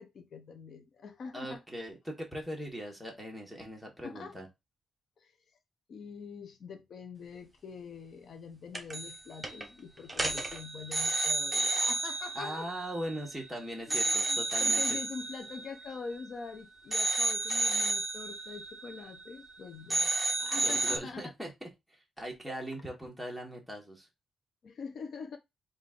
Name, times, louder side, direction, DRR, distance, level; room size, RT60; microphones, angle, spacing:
voice 1, 0.0-1.6 4.0-4.4 5.2-5.3 5.9-12.7 13.9-20.1 20.4-21.3 24.6-25.4, left 5 dB, 60° left, 0.7 m, -44 dB
voice 2, 1.3-4.5 12.3-15.0 20.5-24.1, equal, ahead, 1.4 m, -40 dB
sound 1, 8.7-9.2 9.4-9.7 10.1-13.5 13.9-16.5 16.9-19.6 19.9-21.0, right 2 dB, 15° right, 0.8 m, -32 dB
3.8 x 2.6 x 3.7 m
cardioid pair, 115°, 0 cm